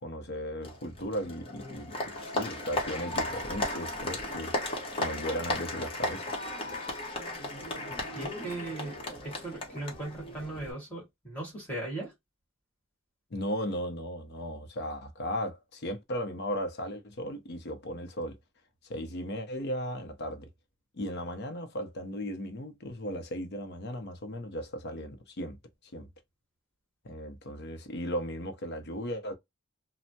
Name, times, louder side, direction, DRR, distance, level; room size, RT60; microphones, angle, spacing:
voice 1, 0.0-4.5 4.9-6.3 13.3-18.4 18.8-20.5 20.9-25.6 25.9-26.1 27.0-29.3, equal, 55° left, 0.6 m, -36 dB
Applause, 0.6-10.7, left 1 dB, 25° left, 0.9 m, -35 dB
voice 2, 8.1-9.0 9.2-12.1, right 2 dB, 10° left, 1.5 m, -38 dB
3.2 x 2.0 x 2.6 m
head